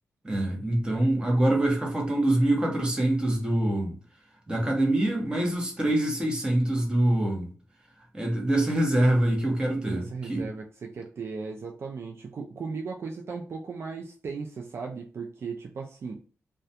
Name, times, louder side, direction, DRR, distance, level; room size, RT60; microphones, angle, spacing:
voice 1, 0.2-4.0 4.5-7.5 8.1-10.5, right 1 dB, 15° right, 0.9 m, -25 dB
voice 2, 9.7-16.2, right 4 dB, 55° right, 0.4 m, -37 dB
2.3 x 2.2 x 2.7 m
wide cardioid pair, 100°, 5 cm